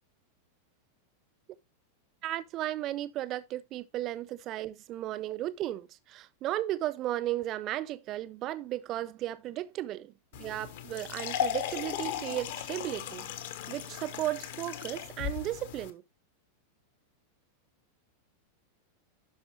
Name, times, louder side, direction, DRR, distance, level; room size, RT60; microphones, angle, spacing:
voice 1, 2.2-10.0 10.4-13.3 13.7-16.0, right 14 dB, 35° right, 0.6 m, -35 dB
sound 1, 10.3-15.9, left 10 dB, 55° left, 1.2 m, -36 dB
11.5 x 5.7 x 3.1 m
figure-of-eight pair, 90°, 0 cm